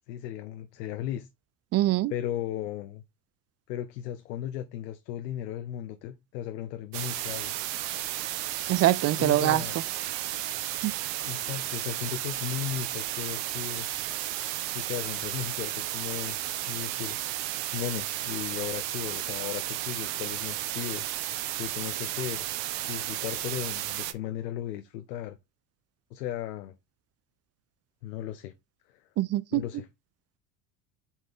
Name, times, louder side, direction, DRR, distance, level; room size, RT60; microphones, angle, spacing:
voice 1, 0.1-1.3 2.1-3.0 3.7-7.5 9.2-9.8 11.2-13.9 14.7-16.4 16.7-17.2 17.7-21.1 21.6-22.5 22.9-25.4 26.1-26.8 28.0-28.5 28.9-29.1 29.5-29.9, left 11 dB, 85° left, 0.9 m, -36 dB
voice 2, 1.7-2.1 8.7-9.6 10.8-10.9 29.2-29.6, right 15 dB, 35° right, 0.5 m, -23 dB
sound 1, 6.9-24.1, right 14 dB, 65° right, 1.1 m, -33 dB
7.7 x 4.5 x 3.6 m
supercardioid pair, 90°, 48 cm